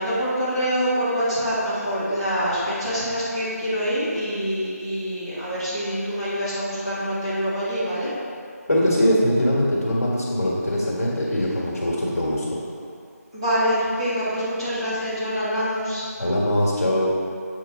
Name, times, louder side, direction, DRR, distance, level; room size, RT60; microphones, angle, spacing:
voice 1, 0.0-8.1 13.3-16.0, equal, 20° right, -13 dB, 1.4 m, -25 dB
voice 2, 8.7-12.6 16.2-17.1, equal, 60° left, -5 dB, 1.6 m, -22 dB
7.2 x 4.4 x 3.6 m, 2.4 s
figure-of-eight pair, 175°, 9 cm